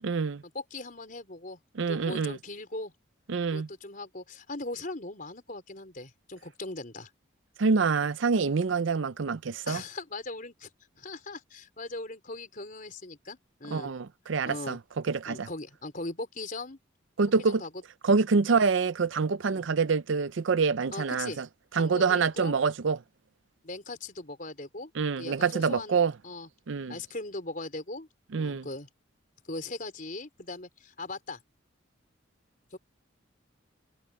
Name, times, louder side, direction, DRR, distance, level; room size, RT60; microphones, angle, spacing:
voice 1, 0.0-0.4 1.8-2.4 3.3-3.7 7.6-9.8 13.7-14.8 15.0-15.5 17.2-17.6 18.0-21.5 21.7-23.0 25.0-26.1 26.7-26.9 28.3-28.6, right 5 dB, 65° right, 0.5 m, -26 dB
voice 2, 0.5-1.6 1.9-2.9 3.5-7.1 9.7-10.7 11.0-13.9 14.4-14.8 15.3-16.8 17.4-17.7 19.4-19.6 20.9-21.4 21.7-22.5 23.6-24.9 25.2-26.5 26.9-28.1 28.3-28.9 29.5-31.4 32.7-32.8, left 2 dB, 40° left, 4.6 m, -39 dB
head